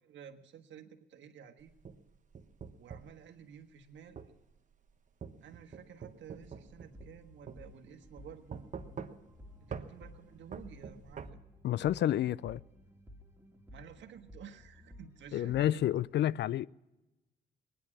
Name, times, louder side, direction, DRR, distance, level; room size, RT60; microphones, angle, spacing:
voice 1, 0.0-1.7 2.8-4.2 5.4-8.6 9.6-11.4 13.7-15.9, right 8 dB, 70° right, 1.5 m, -52 dB
sound 1, 1.6-3.2 4.2-4.3 5.2-7.2 7.5-7.6 8.5-9.4 9.7-9.9 10.5-11.3, right 6 dB, 40° right, 1.2 m, -44 dB
sound 2, 6.4-16.0, left 1 dB, 10° right, 2.3 m, -55 dB
voice 2, 11.6-12.6 15.3-16.7, left 12 dB, 60° left, 0.4 m, -29 dB
20.0 x 10.5 x 6.0 m
cardioid pair, 90°, 20 cm